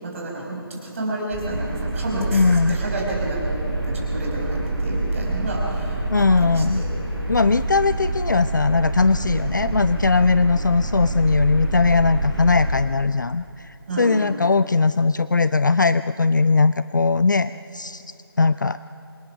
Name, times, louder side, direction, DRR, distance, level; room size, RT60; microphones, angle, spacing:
voice 1, 0.0-6.9 13.9-14.3, right 1 dB, 35° right, -2 dB, 5.3 m, -30 dB
sound 1, 1.3-12.7, right 2 dB, ahead, 3.6 m, -26 dB
voice 2, 2.3-2.8 6.1-6.8 7.3-18.0 18.4-18.8, left 4 dB, 50° left, 14 dB, 0.4 m, -19 dB
26.0 x 19.0 x 5.9 m, 2.6 s
figure-of-eight pair, 155°, 13 cm